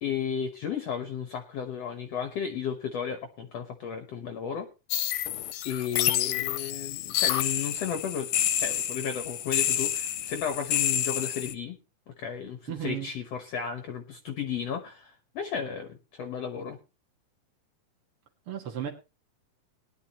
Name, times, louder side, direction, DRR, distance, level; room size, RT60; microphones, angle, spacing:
voice 1, 0.0-4.7 5.7-8.3 8.6-11.8 12.1-16.8, left 7 dB, 60° left, 6 dB, 1.8 m, -34 dB
sound 1, 4.9-11.5, left 11 dB, 80° left, 2.3 m, -29 dB
voice 2, 12.7-13.1 18.5-18.9, right 10 dB, 50° right, 1 dB, 2.1 m, -34 dB
19.5 x 11.5 x 2.9 m, 0.30 s
omnidirectional pair, 3.8 m